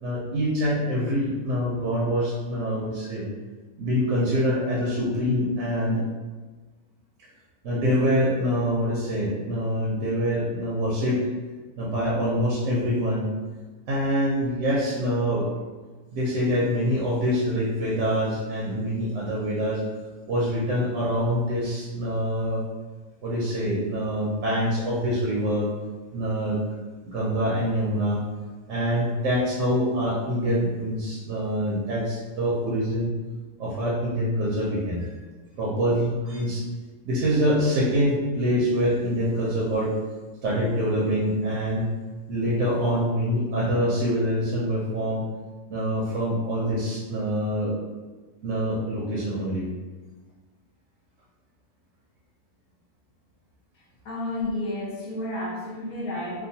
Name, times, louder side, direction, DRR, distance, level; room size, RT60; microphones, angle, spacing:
voice 1, 0.0-3.3 3.8-6.0 7.2-7.3 7.6-11.2 11.8-13.3 13.9-15.5 16.1-19.8 20.3-22.6 23.2-25.7 26.1-26.6 27.0-28.2 28.7-33.1 33.6-35.1 35.6-36.6 37.1-39.9 40.4-41.9 42.3-45.2 45.7-47.7 48.4-49.7, equal, 65° right, -5 dB, 0.8 m, -25 dB
voice 2, 54.0-56.5, left 1 dB, 70° left, -3 dB, 1.1 m, -31 dB
2.8 x 2.3 x 2.7 m, 1.3 s
omnidirectional pair, 1.7 m